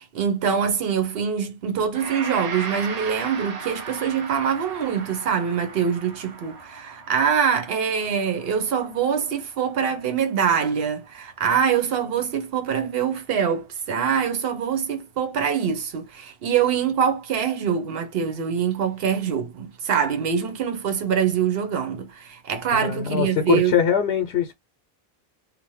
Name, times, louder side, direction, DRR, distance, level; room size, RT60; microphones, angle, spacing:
voice 1, 0.0-23.7, right 7 dB, 70° right, 0.9 m, -24 dB
Gong, 1.9-11.1, right 4 dB, 50° right, 0.6 m, -37 dB
voice 2, 22.7-24.5, left 8 dB, 90° left, 0.8 m, -22 dB
2.5 x 2.1 x 3.0 m
omnidirectional pair, 1.0 m